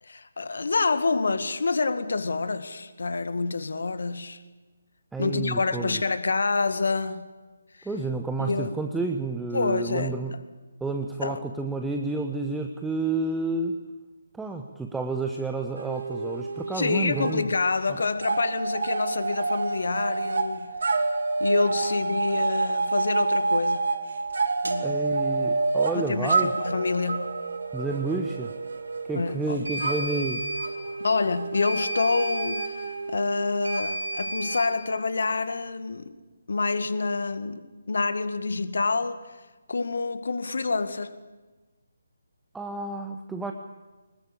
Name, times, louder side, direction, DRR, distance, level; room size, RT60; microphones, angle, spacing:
voice 1, 0.0-4.4 5.2-7.3 7.7-7.9 8.4-8.8 9.5-10.2 11.2-11.4 16.7-21.0 21.4-23.9 24.6-25.1 26.0-27.4 29.1-29.7 31.0-32.8 33.1-36.1 36.5-39.4 39.7-41.1, left 3 dB, 55° left, 1.9 m, -27 dB
voice 2, 5.1-6.0 7.8-10.3 10.8-13.8 14.4-17.5 24.8-26.5 27.7-28.5 29.1-30.4 42.5-43.5, right 3 dB, 5° right, 1.0 m, -30 dB
sound 1, 15.8-17.4 17.6-34.7, right 3 dB, 55° right, 2.4 m, -29 dB
sound 2, 24.7-24.8 29.7-30.7 31.6-32.7 33.6-34.7, right 1 dB, 70° right, 3.3 m, -32 dB
25.0 x 21.0 x 8.7 m
figure-of-eight pair, 145°, 0 cm